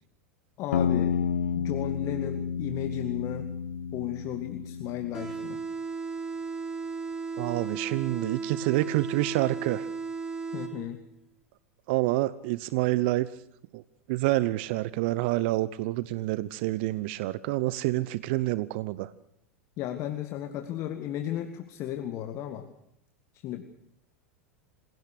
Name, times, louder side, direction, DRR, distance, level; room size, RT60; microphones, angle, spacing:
voice 1, 0.6-1.1 1.6-3.5 3.9-5.6 10.5-11.0 19.8-22.7 23.4-23.6, left 12 dB, 45° left, 8 dB, 2.0 m, -34 dB
sound 1, 0.7-5.4, left 6 dB, 75° left, 1.5 m, -30 dB
sound 2, 5.1-11.1, right 4 dB, 10° right, 4.2 m, -35 dB
voice 2, 7.4-9.9 11.9-13.3 13.7-13.8 14.1-19.1, right 18 dB, 55° right, 17 dB, 0.9 m, -28 dB
27.5 x 17.5 x 6.7 m, 0.75 s
figure-of-eight pair, 90°, 7 cm